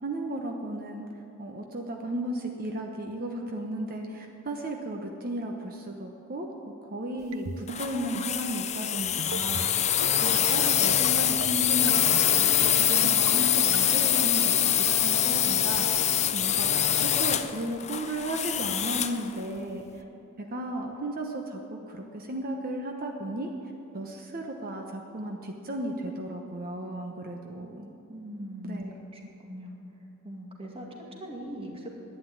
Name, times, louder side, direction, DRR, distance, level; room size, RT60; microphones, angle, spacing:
voice 1, 0.0-1.1 1.4-6.5 6.8-9.9 10.2-12.0 12.3-20.0 20.5-23.5 23.9-27.9 28.6-28.9, right 1 dB, 45° right, 2 dB, 1.0 m, -35 dB
sound 1, 7.3-7.8 8.1-8.4 9.2-9.7 10.0-10.3 11.0-11.5 11.9-12.2 12.9-13.3 13.7-14.1, right 4 dB, 65° right, 0.6 m, -36 dB
sound 2, 7.7-19.2, left 10 dB, 30° left, 0.6 m, -24 dB
voice 2, 28.1-29.8 30.2-32.0, equal, 25° right, 0 dB, 2.0 m, -41 dB
11.5 x 9.6 x 9.4 m, 2.8 s
head